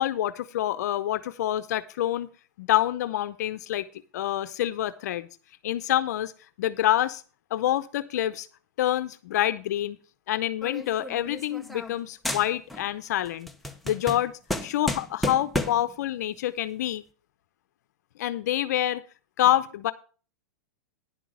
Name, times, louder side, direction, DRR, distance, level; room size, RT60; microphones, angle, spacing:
voice 1, 0.0-2.3 2.6-3.9 4.1-5.3 5.6-6.3 6.6-7.2 7.5-8.5 8.8-10.0 10.3-13.5 13.8-14.3 14.6-17.0 18.2-19.0 19.4-19.9, left 12 dB, 70° left, 13 dB, 0.7 m, -27 dB
sound 1, 10.6-12.0 12.2-12.9 13.2-15.9, left 1 dB, ahead, 0.7 m, -32 dB
10.0 x 6.2 x 6.1 m, 0.38 s
supercardioid pair, 145°, 9 cm